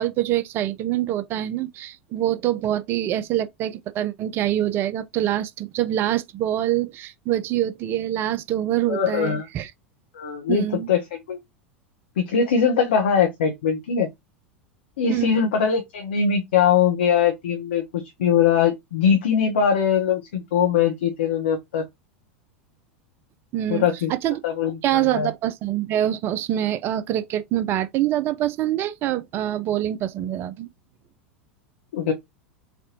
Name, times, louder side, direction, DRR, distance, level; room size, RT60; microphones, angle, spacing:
voice 1, 0.0-9.7 10.5-10.9 15.1-15.4 23.5-24.4 24.8-30.7, right 12 dB, 35° right, 0.4 m, -25 dB
voice 2, 8.9-9.5 10.1-11.4 12.2-14.1 15.0-21.9 23.7-24.1 24.4-25.3 31.9-32.1, left 7 dB, 60° left, 0.7 m, -21 dB
4.1 x 2.4 x 2.8 m
figure-of-eight pair, 85°, 7 cm